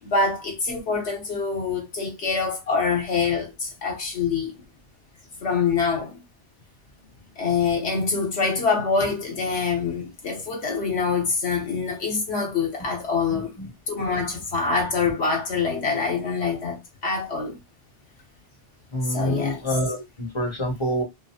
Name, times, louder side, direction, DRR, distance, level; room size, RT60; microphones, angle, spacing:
voice 1, 0.0-4.6 5.4-6.2 7.4-13.5 13.9-17.6 19.0-19.6, left 4 dB, 65° left, 1.0 m, -25 dB
voice 2, 13.3-13.7 14.1-14.4 18.9-21.0, equal, 30° left, 0.7 m, -27 dB
2.5 x 2.4 x 2.6 m
omnidirectional pair, 1.2 m